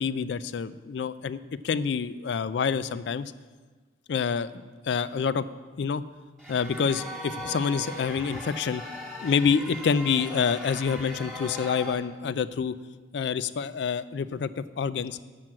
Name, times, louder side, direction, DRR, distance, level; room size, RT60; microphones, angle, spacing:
voice 1, 0.0-1.4 1.6-3.3 4.1-5.4 5.8-6.0 6.5-8.8 9.2-12.7 13.1-15.2, left 6 dB, 70° left, 15 dB, 0.4 m, -27 dB
sound 1, 6.4-11.9, equal, ahead, 1.7 m, -39 dB
7.7 x 5.9 x 7.5 m, 1.4 s
head